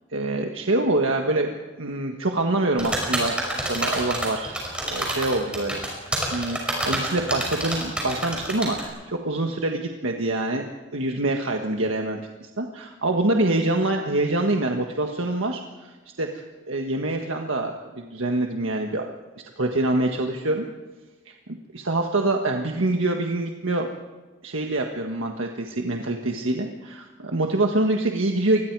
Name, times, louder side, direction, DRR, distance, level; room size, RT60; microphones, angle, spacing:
voice 1, 0.1-5.8 6.3-10.7 10.9-15.9 16.2-19.1 19.6-20.6 21.3-23.9 24.4-28.7, right 2 dB, 85° right, 3 dB, 1.5 m, -25 dB
sound 1, 2.8-8.8, right 1 dB, 5° right, 5.8 m, -27 dB
27.5 x 21.0 x 4.8 m, 1.3 s
head